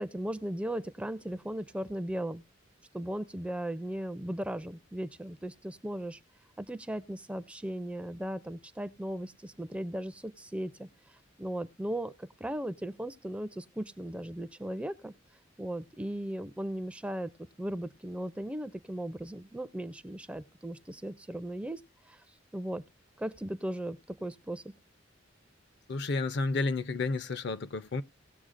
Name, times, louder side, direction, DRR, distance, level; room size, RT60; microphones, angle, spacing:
voice 1, 0.0-2.4 2.9-6.2 6.6-15.1 15.6-17.3 17.6-21.8 22.1-22.2 22.5-22.8 23.2-24.7, right 1 dB, 5° right, 0.4 m, -37 dB
voice 2, 25.9-28.0, left 3 dB, 60° left, 0.5 m, -31 dB
18.0 x 6.9 x 2.5 m
head